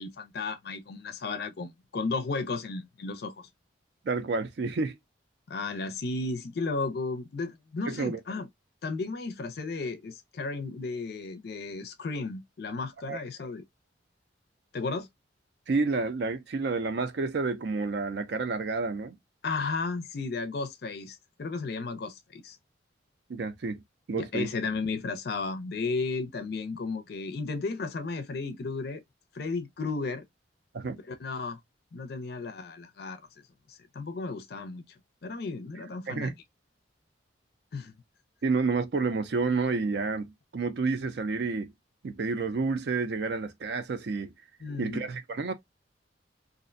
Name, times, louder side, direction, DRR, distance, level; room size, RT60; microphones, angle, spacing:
voice 1, 0.0-3.5 5.5-8.5 8.8-13.6 14.7-15.1 19.4-22.6 24.2-29.0 29.3-30.3 31.1-31.6 31.9-33.2 33.7-34.8 35.2-36.3 37.7-37.9 44.6-45.1, left 3 dB, 55° left, 0.4 m, -34 dB
voice 2, 4.0-5.0 7.9-8.2 13.1-13.2 15.7-19.2 23.3-23.8 24.1-24.5 30.7-31.0 36.1-36.3 38.4-41.7 42.0-44.3 44.8-45.5, right 4 dB, 60° right, 0.4 m, -29 dB
2.5 x 2.1 x 2.5 m
head